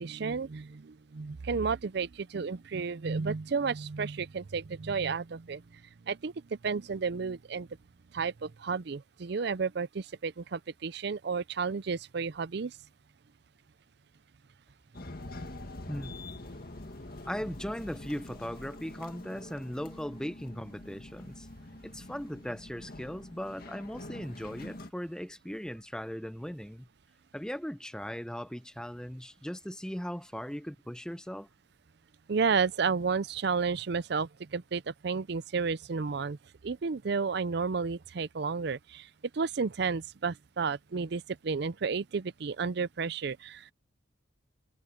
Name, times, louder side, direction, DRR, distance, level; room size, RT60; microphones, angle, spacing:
voice 1, 0.0-5.8 6.1-7.7 8.1-12.8 32.3-36.4 36.6-39.1 39.3-43.7, right 5 dB, 55° right, 0.5 m, -32 dB
sound 1, 14.9-24.9, left 1 dB, 50° left, 2.0 m, -45 dB
voice 2, 15.9-16.5 17.3-21.5 21.8-26.9 27.3-31.5, equal, 5° left, 0.8 m, -38 dB
head